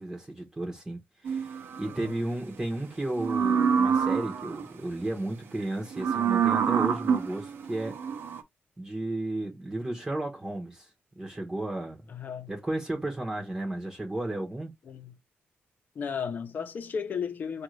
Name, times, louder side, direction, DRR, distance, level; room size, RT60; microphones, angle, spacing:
voice 1, 0.0-8.0 8.8-10.9 11.2-12.0 12.5-14.7, right 1 dB, 15° right, 0.8 m, -33 dB
sound 1, 1.3-2.0 3.1-4.7 5.9-8.4, right 7 dB, 70° right, 0.8 m, -27 dB
voice 2, 1.8-2.2 12.1-12.5 14.9-15.1 15.9-17.6, left 6 dB, 50° left, 0.8 m, -34 dB
5.0 x 2.5 x 3.1 m
wide cardioid pair, 140°, 4 cm